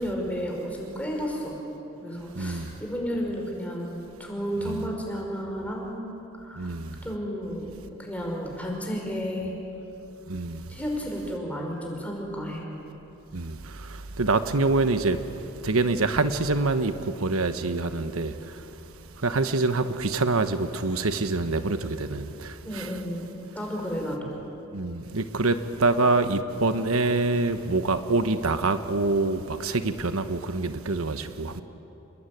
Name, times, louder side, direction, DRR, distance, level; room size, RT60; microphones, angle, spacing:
voice 1, 0.0-1.6 2.0-6.8 7.0-7.7 8.0-9.5 10.7-12.6 22.6-23.2 23.6-24.2, equal, 5° left, 5.6 m, -32 dB
voice 2, 2.3-2.7 4.6-4.9 6.6-7.0 10.3-10.8 13.3-23.0 24.7-31.6, right 3 dB, 90° right, 1.2 m, -26 dB
28.5 x 22.0 x 9.3 m
head